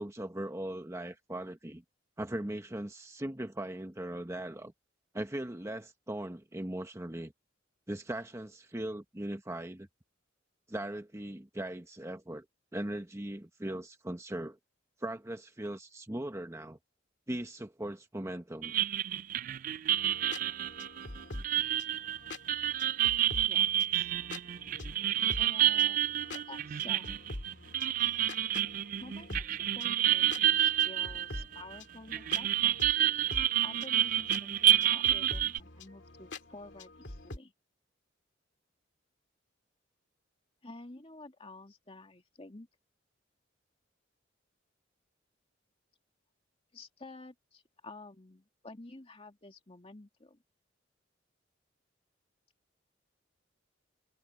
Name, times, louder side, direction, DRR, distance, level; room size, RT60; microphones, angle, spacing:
voice 1, 0.0-1.8 2.2-4.7 5.1-7.3 7.9-9.9 10.7-12.4 12.7-14.6 15.0-16.8 17.3-18.7, right 1 dB, 15° right, 1.0 m, -39 dB
sound 1, 18.6-31.8 32.1-35.6, right 11 dB, 45° right, 0.3 m, -29 dB
sound 2, 20.0-37.4, left 2 dB, 60° left, 2.6 m, -46 dB
voice 2, 23.5-24.1 25.4-27.2 29.0-32.8 33.6-37.5 40.6-42.7 46.7-50.4, left 2 dB, 30° left, 2.2 m, -50 dB
head